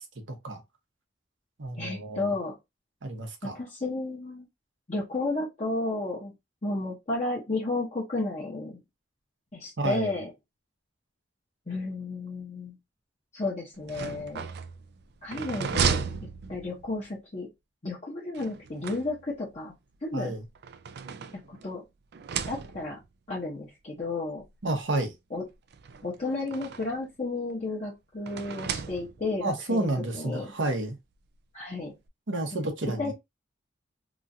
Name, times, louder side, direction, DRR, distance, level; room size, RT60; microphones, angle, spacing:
voice 1, 0.3-0.6 1.6-2.3 3.0-3.6 9.8-10.1 20.1-20.4 24.6-25.1 29.4-31.0 32.3-33.1, right 2 dB, 80° right, 0.9 m, -30 dB
voice 2, 1.8-2.6 3.4-4.5 4.9-6.3 6.6-8.8 9.5-10.3 11.7-12.8 13.3-14.5 15.2-17.5 17.8-19.7 20.0-20.3 21.3-21.8 22.5-23.0 23.3-24.4 25.3-25.4 26.0-29.9 30.1-30.5 31.5-31.9 33.0-33.1, left 2 dB, 35° left, 0.9 m, -32 dB
sound 1, 13.7-17.1 18.3-19.5 20.3-21.7 22.1-23.1 24.0-24.1 24.4-24.5 25.7-27.0 28.3-29.4, right 6 dB, 60° right, 0.4 m, -34 dB
3.0 x 2.4 x 2.6 m
head